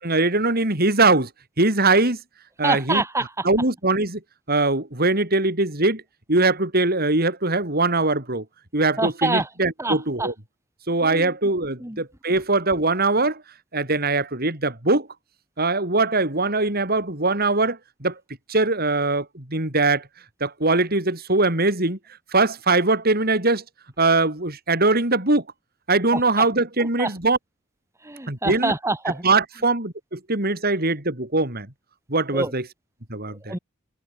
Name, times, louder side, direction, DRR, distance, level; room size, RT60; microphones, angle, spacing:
voice 1, 0.0-1.3 1.6-2.2 2.6-3.0 3.5-4.2 4.5-6.0 6.3-8.4 8.7-10.3 10.9-13.4 13.7-15.1 15.6-18.2 18.5-20.1 20.4-22.0 22.3-23.6 24.0-25.4 25.9-27.4 28.3-28.7 29.2-31.7 32.1-32.6 33.1-33.6, right 3 dB, 45° right, 5.5 m, -21 dB
voice 2, 2.6-3.5 9.0-9.5 9.8-10.3 11.0-11.3 11.8-12.0 26.1-26.5 26.8-27.1 28.0-29.2 32.3-32.5 33.5-33.6, right 2 dB, 15° right, 2.0 m, -26 dB
head